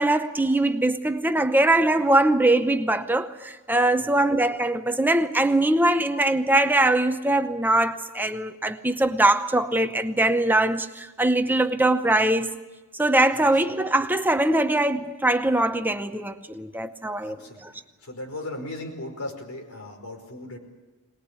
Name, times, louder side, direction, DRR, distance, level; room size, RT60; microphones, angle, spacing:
voice 1, 0.0-12.5 13.0-17.4 17.6-17.7, right 1 dB, 10° right, 0.8 m, -22 dB
voice 2, 4.0-4.3 13.3-13.4 13.8-13.9 16.2-16.3 17.2-17.7 18.0-20.6, left 1 dB, 85° left, 5.1 m, -37 dB
22.5 x 20.0 x 8.3 m
head